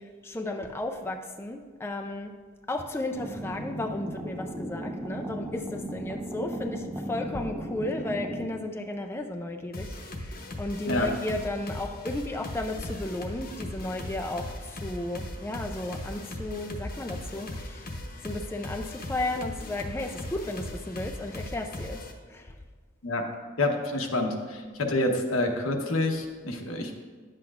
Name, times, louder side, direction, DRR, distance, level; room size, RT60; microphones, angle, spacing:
voice 1, 0.0-2.3 2.7-17.9 18.2-22.0 22.3-22.6, left 2 dB, 10° left, 4 dB, 0.3 m, -34 dB
sound 1, 3.1-8.4, right 1 dB, 15° right, 0.7 m, -36 dB
sound 2, 9.7-22.1, left 1 dB, 45° left, 0.8 m, -38 dB
voice 2, 23.6-26.9, left 2 dB, 90° left, 2 dB, 1.0 m, -27 dB
10.5 x 7.7 x 2.4 m, 1.5 s
head